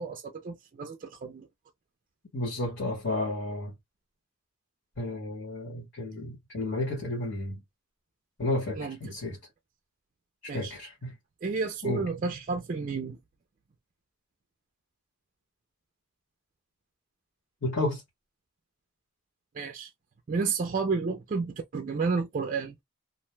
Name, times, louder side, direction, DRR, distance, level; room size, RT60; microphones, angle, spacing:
voice 1, 0.0-1.5 8.8-9.0 10.5-10.7 11.4-13.2 19.6-19.9 20.3-22.7, right 4 dB, 40° right, 0.3 m, -31 dB
voice 2, 2.3-3.7 5.0-7.6 8.4-9.4 10.5-11.1 11.8-12.1 17.6-18.0, left 1 dB, 60° left, 1.2 m, -32 dB
2.5 x 2.1 x 3.1 m
head